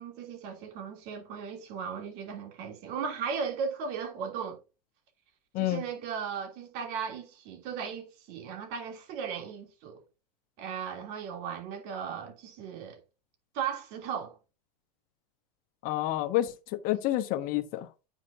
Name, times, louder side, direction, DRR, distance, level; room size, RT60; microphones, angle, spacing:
voice 1, 0.0-4.6 5.6-10.0 10.6-13.0 13.5-14.3, right 6 dB, 55° right, 3.0 m, -36 dB
voice 2, 15.8-16.5 16.8-17.9, left 15 dB, 45° left, 1.0 m, -28 dB
8.9 x 6.5 x 2.7 m
supercardioid pair, 120°, 20 cm